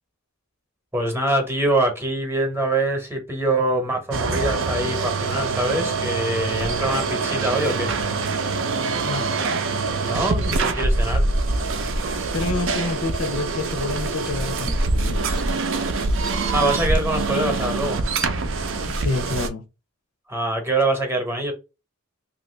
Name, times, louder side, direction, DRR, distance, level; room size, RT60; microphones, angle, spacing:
voice 1, 0.9-7.9 10.0-11.2 16.5-18.0 20.3-21.5, right 2 dB, 10° right, 0.8 m, -24 dB
sound 1, 4.1-19.5, right 3 dB, 60° right, 0.5 m, -24 dB
voice 2, 9.0-9.3 12.3-15.4 18.9-19.6, left 3 dB, 80° left, 0.6 m, -28 dB
2.9 x 2.6 x 3.1 m
head